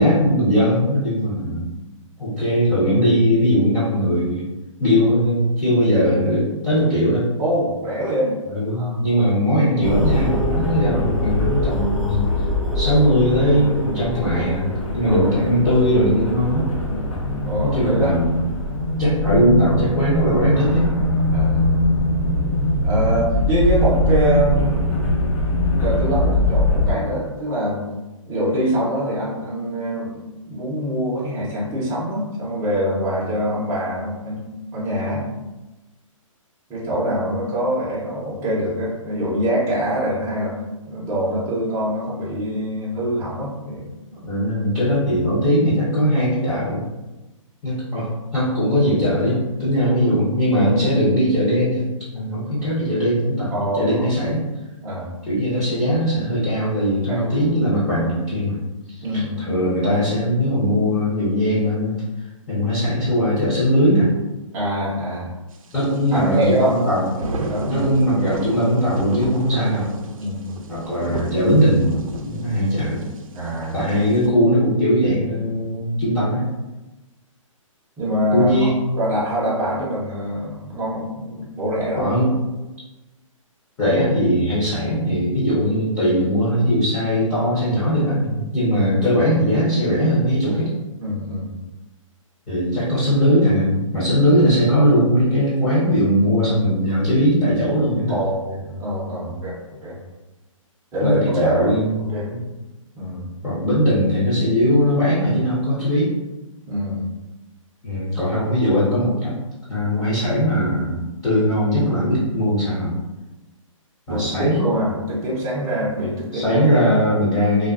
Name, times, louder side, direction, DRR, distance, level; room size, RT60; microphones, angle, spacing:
voice 1, 0.0-1.7 2.2-4.5 4.8-7.2 8.5-12.3 12.7-16.7 17.6-18.4 19.0-20.9 44.2-46.8 47.6-51.8 52.1-54.4 55.3-58.6 59.5-61.9 62.5-64.1 65.7-67.1 67.7-69.9 70.7-71.9 72.2-73.0 73.7-76.4 78.3-78.9 81.9-82.3 83.8-90.7 92.5-98.2 99.2-99.4 101.0-102.4 103.4-106.1 107.8-109.3 109.7-112.9 114.1-114.6 116.3-117.7, equal, 15° left, -12 dB, 0.7 m, -19 dB
voice 2, 7.4-8.4 8.7-9.0 10.6-10.8 15.0-15.3 16.9-17.2 17.4-18.1 21.3-21.6 22.8-25.0 25.7-27.8 28.2-34.4 34.7-35.3 36.7-40.6 40.9-43.9 53.5-54.1 54.8-55.1 57.1-57.3 59.0-59.5 64.5-65.3 66.1-67.9 70.2-70.5 73.3-73.8 78.0-78.7 79.0-82.1 91.0-91.5 98.1-99.5 99.8-100.0 100.9-101.8 102.1-102.3 103.0-103.3 106.7-107.1 114.1-116.6, equal, 15° right, -8 dB, 0.6 m, -24 dB
sound 1, 9.8-26.9, left 1 dB, 70° left, 0.8 m, -22 dB
sound 2, 65.5-74.3, right 2 dB, 80° right, 0.4 m, -32 dB
2.3 x 2.3 x 2.3 m, 1.1 s
hypercardioid pair, 145°, 17 cm